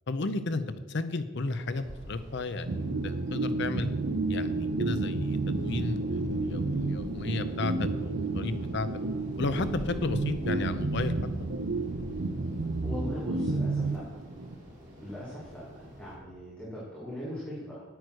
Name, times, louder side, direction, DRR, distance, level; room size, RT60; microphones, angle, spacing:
voice 1, 0.1-3.9 4.3-8.9 9.4-11.1, left 3 dB, 60° left, 11 dB, 0.7 m, -33 dB
sound 1, 1.4-16.2, equal, 40° right, 3.0 m, -47 dB
sound 2, 2.7-14.5, right 3 dB, 70° right, 0.7 m, -31 dB
voice 2, 12.8-14.0 15.0-17.8, left 1 dB, 5° left, -8 dB, 2.9 m, -39 dB
9.5 x 9.2 x 6.3 m, 1.2 s
head